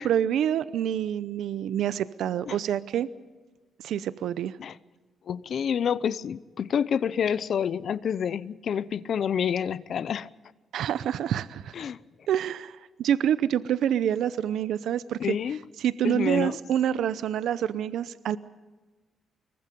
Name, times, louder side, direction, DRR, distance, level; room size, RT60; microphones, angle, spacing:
voice 1, 0.0-3.1 3.8-4.6 10.7-11.7 12.3-15.4 15.8-18.4, right 10 dB, 80° right, 0.6 m, -27 dB
voice 2, 5.3-10.3 11.7-12.0 15.2-15.6 16.0-16.6, left 8 dB, 55° left, 0.7 m, -28 dB
25.0 x 22.5 x 5.3 m
cardioid pair, 135°, 0 cm